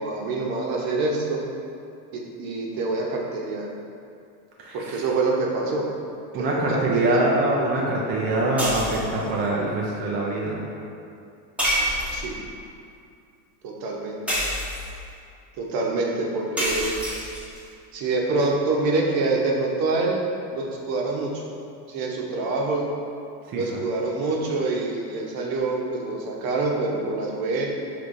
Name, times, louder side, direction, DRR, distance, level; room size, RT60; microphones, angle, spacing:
voice 1, 0.0-1.4 2.1-3.7 4.7-5.9 6.3-7.3 12.1-12.4 13.6-14.2 15.6-17.0 17.9-20.2 20.5-21.5 21.9-22.8 23.5-27.7, right 3 dB, 45° right, -1 dB, 0.9 m, -26 dB
voice 2, 4.6-5.0 6.3-10.7 23.5-23.8, right 2 dB, 25° right, -4 dB, 0.3 m, -24 dB
sound 1, 8.6-9.2 11.6-12.4 14.3-15.0 16.6-17.6, equal, 5° right, 0.9 m, -27 dB
6.4 x 3.2 x 2.5 m, 2.5 s
supercardioid pair, 115°, 49 cm